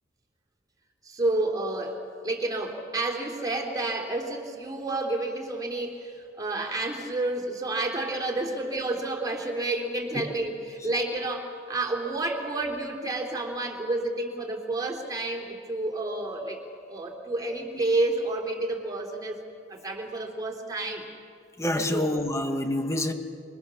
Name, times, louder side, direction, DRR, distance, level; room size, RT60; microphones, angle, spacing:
voice 1, 1.0-16.6 16.9-19.4 19.7-21.1 21.9-22.1, right 2 dB, 20° right, 1 dB, 3.3 m, -30 dB
voice 2, 21.6-23.1, left 1 dB, 15° left, 6 dB, 1.4 m, -27 dB
27.0 x 25.0 x 7.1 m, 2.4 s
head